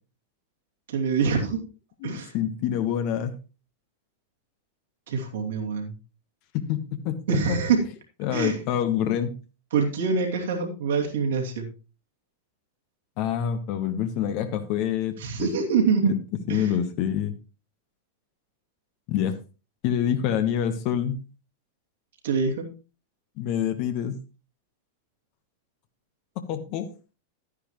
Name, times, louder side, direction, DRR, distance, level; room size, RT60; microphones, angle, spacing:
voice 1, 0.9-1.6 2.0-2.3 5.1-5.9 7.3-7.8 8.3-8.6 9.7-11.7 15.2-16.2 16.5-16.7 22.2-22.7, right 5 dB, 60° right, 1 dB, 2.5 m, -25 dB
voice 2, 2.0-3.3 6.5-7.4 8.2-9.3 13.2-15.6 16.5-17.3 19.1-19.4 19.8-21.2 23.4-24.2 26.5-26.9, left 9 dB, 45° left, 9 dB, 1.1 m, -26 dB
12.0 x 9.8 x 3.1 m, 0.32 s
figure-of-eight pair, 90°, 0 cm